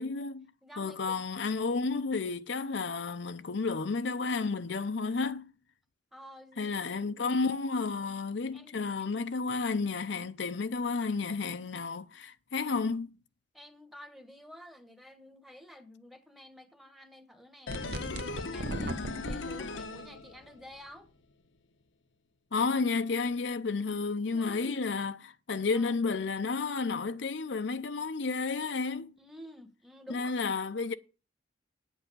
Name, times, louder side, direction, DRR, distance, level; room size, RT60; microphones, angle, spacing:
voice 1, 0.0-0.5 0.8-5.5 6.6-13.2 22.5-29.1 30.1-30.9, left 4 dB, 70° left, 0.6 m, -31 dB
voice 2, 0.6-1.2 6.1-7.4 8.0-8.2 8.5-9.1 13.5-21.1 24.3-24.8 25.7-25.9 29.2-30.5, equal, ahead, 1.1 m, -51 dB
sound 1, 17.7-20.8 21.1-21.2, left 3 dB, 90° left, 1.0 m, -38 dB
sound 2, 17.7-19.4, right 1 dB, 55° right, 0.9 m, -36 dB
8.9 x 8.1 x 6.1 m
head